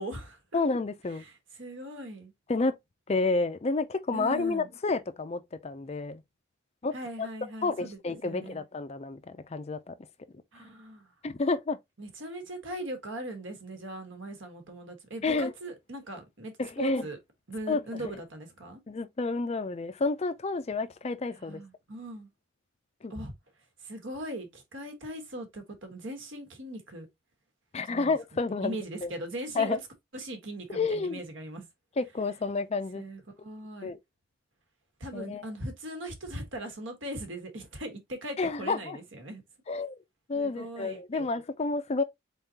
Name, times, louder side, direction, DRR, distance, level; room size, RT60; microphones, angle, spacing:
voice 1, 0.0-0.6 1.1-2.3 4.1-4.7 6.9-8.6 10.5-11.1 12.0-17.2 17.5-18.8 21.3-22.3 23.1-23.3 23.8-27.1 27.8-28.1 28.6-29.8 30.1-31.6 32.9-33.9 35.0-39.4 40.3-41.3, right 1 dB, 65° right, 1.3 m, -40 dB
voice 2, 0.5-1.3 2.5-2.7 3.1-6.2 6.8-7.3 7.6-9.9 11.2-11.8 15.2-15.5 16.6-17.1 17.7-17.8 18.9-21.6 23.0-23.1 27.7-28.8 29.0-29.1 29.6-29.8 30.7-31.2 32.0-33.0 33.8-34.0 35.1-35.4 38.4-39.0 39.7-40.0 40.3-42.0, left 3 dB, 30° left, 0.4 m, -30 dB
4.0 x 3.6 x 2.8 m
head